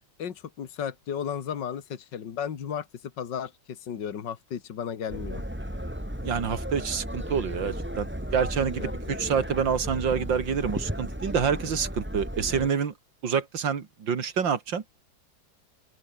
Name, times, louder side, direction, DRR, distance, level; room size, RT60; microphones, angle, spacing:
voice 1, 0.2-5.4 8.8-9.4, left 8 dB, 70° left, 2.3 m, -34 dB
sound 1, 5.1-12.7, equal, 5° right, 7.1 m, -34 dB
voice 2, 6.2-12.9 13.2-14.8, right 6 dB, 80° right, 2.9 m, -27 dB
open air
omnidirectional pair, 2.0 m